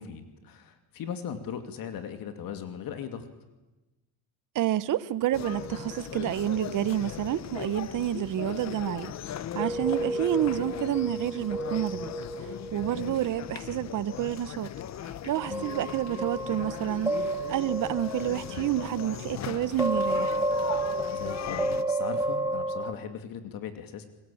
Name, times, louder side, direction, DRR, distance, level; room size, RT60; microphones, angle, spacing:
voice 1, 0.0-3.3 12.8-13.2 15.5-15.7 21.1-24.1, left 8 dB, 60° left, 2.6 m, -39 dB
voice 2, 4.5-9.1 9.5-12.1 12.7-14.7 15.2-17.1 17.5-20.4, right 12 dB, 50° right, 1.2 m, -29 dB
sound 1, 5.3-21.8, left 10 dB, 45° left, 1.0 m, -39 dB
sound 2, 5.3-6.5 9.6-13.5 15.4-19.3 19.8-22.9, right 1 dB, 5° right, 0.8 m, -32 dB
28.0 x 21.5 x 8.7 m
cardioid pair, 125°, 39 cm